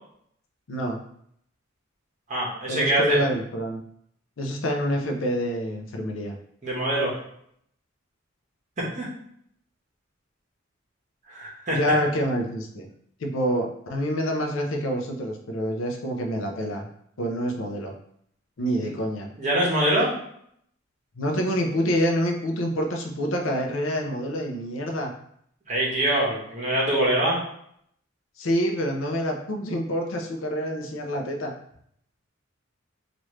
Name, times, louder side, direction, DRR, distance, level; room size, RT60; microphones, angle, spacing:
voice 1, 0.7-1.0 2.7-3.8 4.4-6.4 11.7-12.9 13.2-16.9 17.2-17.9 18.6-19.3 21.2-25.1 28.4-31.5, equal, 75° left, 2 dB, 0.6 m, -27 dB
voice 2, 2.3-3.2 6.6-7.1 8.9-9.1 11.3-11.8 18.8-18.9 19.4-20.1 25.7-27.4, right 1 dB, 40° right, -4 dB, 1.1 m, -24 dB
3.1 x 2.5 x 3.1 m, 0.69 s
head